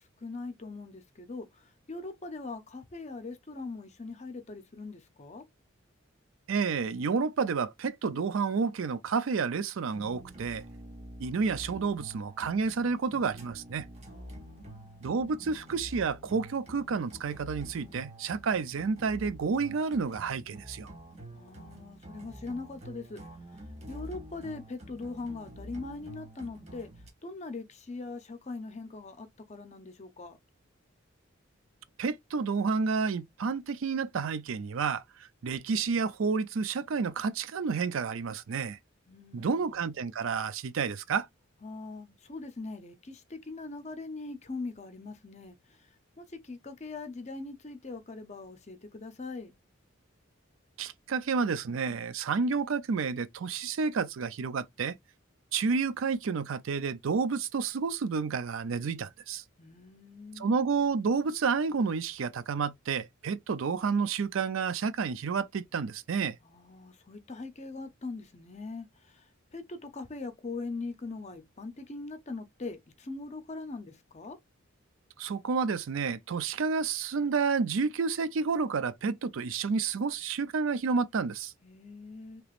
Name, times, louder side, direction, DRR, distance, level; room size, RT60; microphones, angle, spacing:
voice 1, 0.0-5.4 14.1-15.5 21.3-23.2 23.5-23.6 23.9-26.9 27.2-30.4 39.1-39.8 41.6-45.8 46.2-49.6 59.6-60.5 66.4-74.4 81.6-82.4, left 3 dB, 35° left, 0.6 m, -41 dB
voice 2, 6.5-10.6 11.2-13.9 15.0-20.9 32.0-35.0 35.4-38.8 39.3-41.3 50.8-55.0 55.5-59.4 60.4-66.4 75.2-81.5, right 5 dB, 70° right, 0.4 m, -30 dB
sound 1, 9.9-27.1, right 1 dB, 30° right, 0.9 m, -47 dB
3.3 x 2.9 x 2.4 m
head